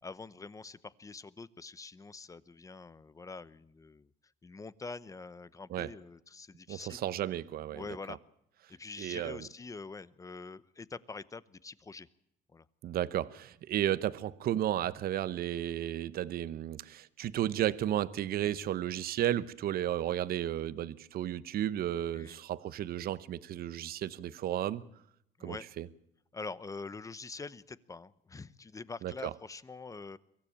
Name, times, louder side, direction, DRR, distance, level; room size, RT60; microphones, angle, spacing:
voice 1, 0.0-4.1 4.4-7.0 7.7-8.2 8.7-12.1 12.5-12.7 22.1-22.4 25.4-25.7 26.3-30.2, left 4 dB, 20° left, 0.8 m, -45 dB
voice 2, 6.7-8.2 9.0-9.4 12.8-24.9 25.4-25.9 29.0-29.1, right 12 dB, 60° right, 0.9 m, -33 dB
23.5 x 15.5 x 8.6 m
cardioid pair, 110°, 17 cm